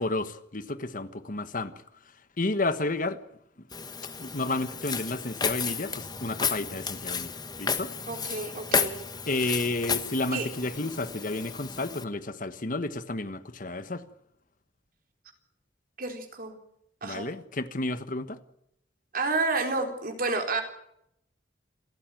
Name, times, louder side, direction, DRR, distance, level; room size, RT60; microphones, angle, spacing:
voice 1, 0.0-1.7 2.4-3.2 4.2-7.3 7.6-7.9 9.3-14.0 17.0-18.4, left 2 dB, 45° left, 1.4 m, -31 dB
Walk footsteps, 3.7-12.0, left 5 dB, 20° left, 1.2 m, -32 dB
voice 2, 8.1-9.0 10.3-10.5 16.0-16.6 17.0-17.3 19.1-20.6, right 3 dB, 50° right, 4.1 m, -30 dB
27.5 x 14.0 x 9.2 m
head